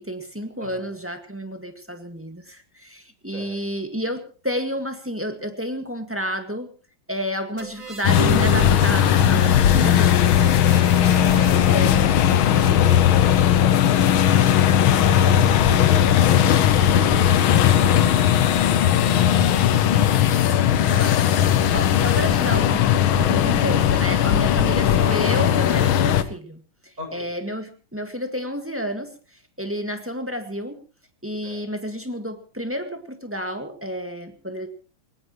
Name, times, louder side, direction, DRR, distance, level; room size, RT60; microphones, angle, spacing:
voice 1, 0.0-6.7 7.1-10.5 11.0-11.2 11.7-12.1 20.8-29.1 29.6-30.8 31.2-34.7, equal, 5° right, 6 dB, 1.7 m, -30 dB
voice 2, 0.6-0.9 3.3-3.6 11.2-11.4 11.7-16.5 16.9-18.1 18.7-19.9 20.3-20.6 24.6-24.7 27.0-27.3 31.4-31.6, right 1 dB, 35° right, 2 dB, 7.8 m, -40 dB
sound 1, 7.6-12.0, right 4 dB, 55° right, 3.5 m, -39 dB
sound 2, 8.0-26.2, left 10 dB, 70° left, 1.8 m, -18 dB
Harp, 8.2-14.2, right 10 dB, 90° right, 2.5 m, -38 dB
22.0 x 19.5 x 3.2 m, 0.36 s
omnidirectional pair, 2.4 m